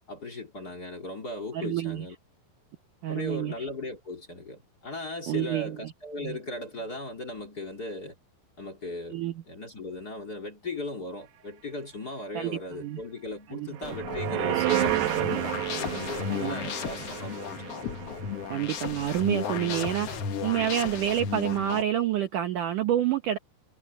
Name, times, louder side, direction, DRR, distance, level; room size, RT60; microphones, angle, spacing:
voice 1, 0.1-2.1 3.1-8.2 8.6-9.2 9.5-17.5, left 2 dB, 25° left, 2.8 m, -38 dB
voice 2, 1.5-2.1 3.0-3.7 5.3-5.8 6.2-6.4 9.1-9.3 12.3-13.0 13.5-13.7 16.3-16.6 18.5-23.4, right 11 dB, 65° right, 2.2 m, -28 dB
sound 1, 13.8-21.8, left 7 dB, 60° left, 1.6 m, -34 dB
sound 2, 13.8-19.1 19.5-19.6, right 14 dB, 80° right, 3.5 m, -31 dB
omnidirectional pair, 4.8 m